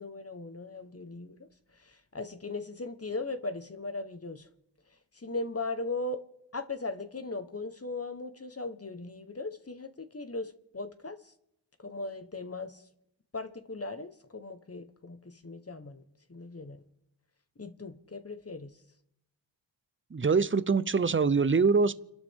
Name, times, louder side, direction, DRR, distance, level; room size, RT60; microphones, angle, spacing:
voice 1, 0.0-1.4 2.1-4.5 5.2-6.2 6.5-11.2 11.8-12.8 13.3-16.0 16.3-16.8 17.6-18.7, left 3 dB, 30° left, 1.3 m, -38 dB
voice 2, 20.1-22.0, right 4 dB, 25° right, 0.7 m, -24 dB
29.5 x 12.0 x 3.7 m
cardioid pair, 50°, 47 cm